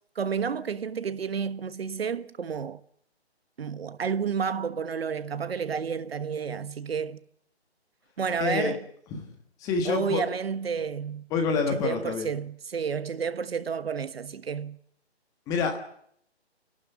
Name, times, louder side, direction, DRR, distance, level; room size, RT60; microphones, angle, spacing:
voice 1, 0.1-2.8 3.6-7.2 8.2-8.9 9.8-11.3 11.5-14.8, right 6 dB, 65° right, 1.3 m, -31 dB
voice 2, 8.3-8.8 9.1-9.3 9.6-10.2 11.3-12.3 15.5-15.8, left 5 dB, 10° left, 1.4 m, -27 dB
29.5 x 12.0 x 8.4 m
hypercardioid pair, 165°, 33 cm